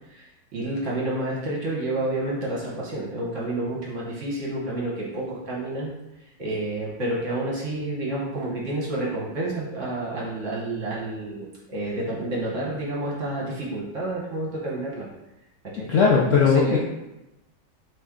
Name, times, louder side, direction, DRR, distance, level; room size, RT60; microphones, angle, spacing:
voice 1, 0.1-5.9 6.4-11.5 11.7-15.1 15.7-15.9 16.4-16.8, right 1 dB, 50° right, -4 dB, 1.2 m, -29 dB
voice 2, 15.9-16.8, left 5 dB, 80° left, -4 dB, 0.6 m, -18 dB
4.3 x 3.1 x 3.6 m, 0.94 s
omnidirectional pair, 2.0 m